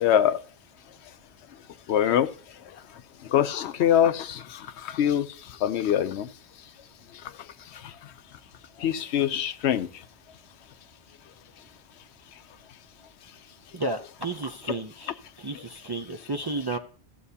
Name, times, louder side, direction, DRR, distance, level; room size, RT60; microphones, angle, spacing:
voice 1, 0.0-0.4 1.9-2.3 3.3-4.4 4.9-5.2 5.6-6.3 8.8-9.9, left 10 dB, 75° left, 0.9 m, -23 dB
voice 2, 13.7-15.1 15.4-16.8, right 2 dB, 40° right, 0.3 m, -32 dB
14.5 x 7.7 x 2.8 m
omnidirectional pair, 1.2 m